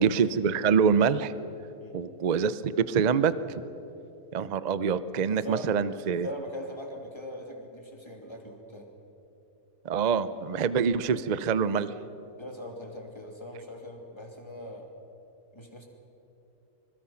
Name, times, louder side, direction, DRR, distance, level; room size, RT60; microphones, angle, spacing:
voice 1, 0.0-1.3 1.9-3.6 4.3-6.3 9.8-11.9, right 6 dB, 90° right, 14 dB, 0.3 m, -25 dB
voice 2, 5.3-5.7 6.2-8.9 12.4-14.9 15.5-15.9, left 1 dB, 15° left, 1 dB, 2.7 m, -41 dB
25.5 x 21.0 x 5.8 m, 2.9 s
omnidirectional pair, 1.7 m